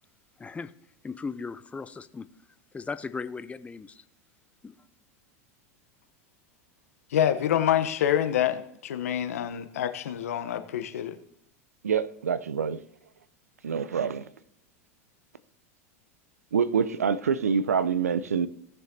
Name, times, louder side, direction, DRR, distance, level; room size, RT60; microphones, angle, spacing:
voice 1, 0.4-0.7 1.0-2.3 2.7-4.0 4.6-4.8, left 4 dB, 15° left, 0.7 m, -37 dB
voice 2, 7.1-11.2, left 10 dB, 75° left, 1.0 m, -26 dB
voice 3, 11.8-12.8 13.6-14.3 16.5-18.5, right 6 dB, 85° right, 0.5 m, -26 dB
17.5 x 6.6 x 2.8 m
hypercardioid pair, 90°, 8 cm